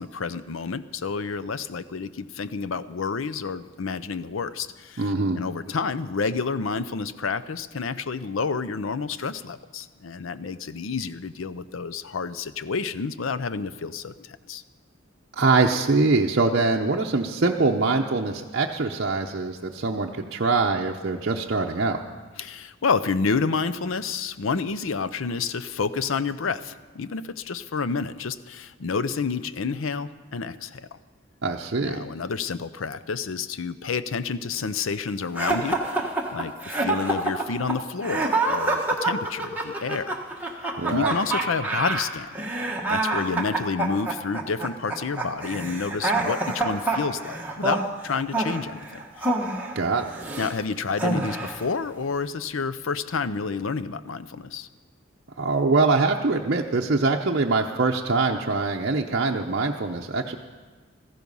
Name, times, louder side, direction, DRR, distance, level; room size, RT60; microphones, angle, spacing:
voice 1, 0.0-5.0 5.4-14.6 22.4-30.9 31.8-40.2 40.9-42.3 42.9-48.9 49.2-49.3 50.4-54.7, left 5 dB, 75° left, 14 dB, 0.6 m, -29 dB
voice 2, 5.0-5.4 15.4-22.0 31.4-32.1 40.8-41.1 49.7-50.1 55.4-60.4, right 3 dB, 55° right, -1 dB, 0.7 m, -23 dB
sound 1, 35.4-50.5 51.0-51.7, right 2 dB, 10° right, 1.4 m, -27 dB
16.0 x 14.5 x 5.4 m, 1.4 s
head